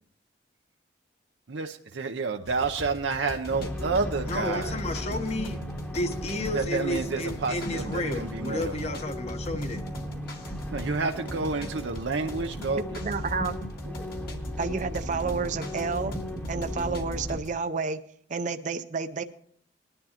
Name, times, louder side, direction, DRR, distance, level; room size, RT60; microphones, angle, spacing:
voice 1, 1.5-4.8 6.5-9.0 10.7-13.0, right 4 dB, 80° right, 4 dB, 0.6 m, -30 dB
sound 1, 2.5-17.6, equal, 60° left, 1.7 m, -42 dB
sound 2, 3.5-17.4, equal, 10° left, 1.0 m, -36 dB
voice 2, 4.3-9.8, left 1 dB, 35° left, 8 dB, 1.0 m, -32 dB
voice 3, 13.0-13.5 13.9-14.0 14.6-16.1 16.5-18.0 18.3-19.2, right 4 dB, 45° right, 8 dB, 0.5 m, -30 dB
20.0 x 11.0 x 2.9 m, 0.62 s
head